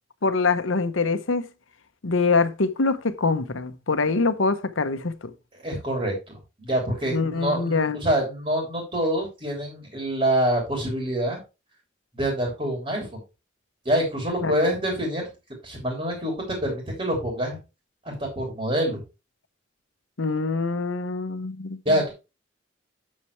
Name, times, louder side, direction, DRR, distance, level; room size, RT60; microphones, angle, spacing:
voice 1, 0.2-1.5 2.0-5.3 7.1-8.0 14.4-14.6 20.2-22.0, left 4 dB, 90° left, 0.9 m, -24 dB
voice 2, 5.6-11.4 12.1-13.2 13.8-15.3 15.6-17.6 18.0-19.0 21.8-22.1, right 1 dB, 30° right, 3.1 m, -26 dB
8.5 x 7.6 x 3.2 m
head